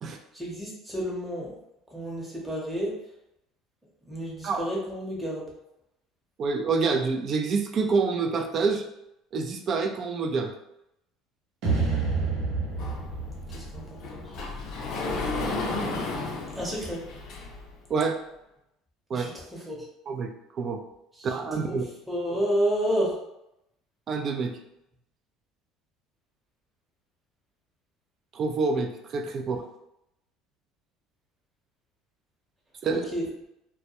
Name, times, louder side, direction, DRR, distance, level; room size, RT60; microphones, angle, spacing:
voice 1, 0.3-1.5 1.9-2.9 4.1-5.5 13.5-13.8 14.1-14.2 16.5-17.0 19.1-19.8 21.7-21.8 22.1-23.1 32.9-33.3, equal, 5° right, -4 dB, 0.8 m, -30 dB
voice 2, 6.4-8.8 9.3-10.5 17.9-18.2 19.1-19.3 20.1-20.8 21.2-21.8 24.1-24.6 28.3-29.6 32.8-33.1, right 4 dB, 45° right, 3 dB, 0.4 m, -27 dB
sound 1, 11.6-14.8, right 4 dB, 70° right, 0.8 m, -29 dB
Sliding door, 12.8-17.8, left 3 dB, 60° left, 0.5 m, -33 dB
2.2 x 2.1 x 2.8 m, 0.83 s
supercardioid pair, 100°, 0 cm